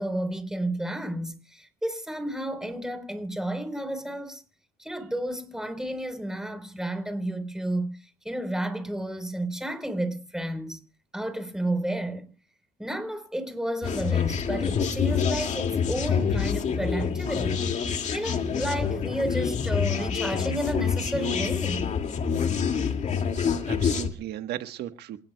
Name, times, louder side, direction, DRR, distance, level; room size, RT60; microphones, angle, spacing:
voice 1, 0.0-4.4 4.8-10.8 11.1-12.3 12.8-17.6 18.1-21.9, right 1 dB, 5° right, 4.0 m, -32 dB
sound 1, 13.8-24.1, left 6 dB, 45° left, 2.4 m, -27 dB
voice 2, 23.4-25.2, right 12 dB, 75° right, 1.4 m, -36 dB
27.5 x 18.0 x 2.3 m
cardioid pair, 110°, 17 cm